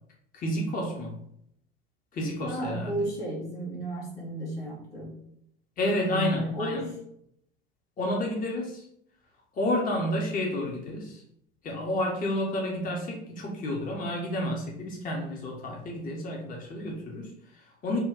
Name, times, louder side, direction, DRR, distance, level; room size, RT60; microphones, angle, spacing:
voice 1, 0.3-1.2 2.1-3.1 5.8-6.8 8.0-8.8 9.6-11.2 11.6-18.0, left 1 dB, 30° left, -1 dB, 0.8 m, -30 dB
voice 2, 2.4-5.2 6.0-6.9, right 1 dB, 75° left, -5 dB, 1.4 m, -33 dB
2.9 x 2.2 x 3.6 m, 0.72 s
figure-of-eight pair, 65°, 29 cm